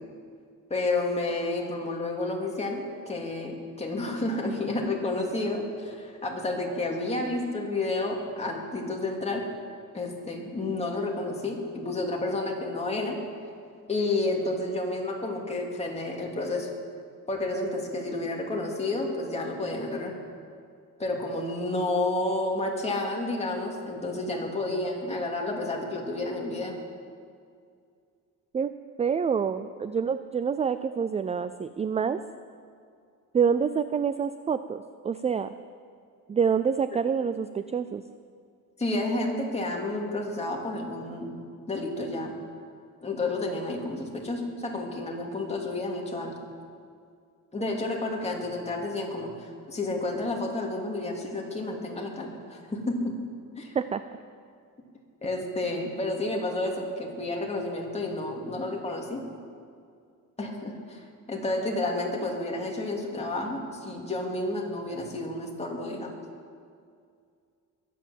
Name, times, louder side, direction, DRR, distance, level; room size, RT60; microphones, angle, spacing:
voice 1, 0.7-9.4 9.9-13.2 13.9-16.7 17.3-20.1 21.0-26.8 38.8-41.3 41.7-42.3 43.0-46.3 47.5-53.1 53.6-53.8 55.2-59.2 60.4-66.1, left 2 dB, 20° left, -1 dB, 2.6 m, -30 dB
voice 2, 29.0-32.2 33.3-35.5 36.3-38.0 53.7-54.0, right 6 dB, 20° right, 12 dB, 0.3 m, -27 dB
22.0 x 8.5 x 7.5 m, 2.3 s
cardioid pair, 145°, 34 cm